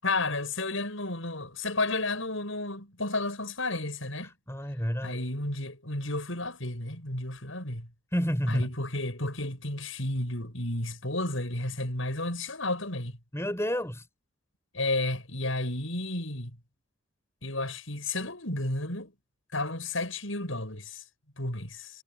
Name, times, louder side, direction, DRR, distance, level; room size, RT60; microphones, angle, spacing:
voice 1, 0.0-4.3 5.0-7.9 8.5-13.2 14.7-16.6 17.4-19.1 19.5-21.0 21.4-21.9, left 2 dB, 75° left, 7.1 m, -32 dB
voice 2, 4.2-5.2 8.1-8.7 13.3-14.1, equal, 15° left, 6.7 m, -30 dB
head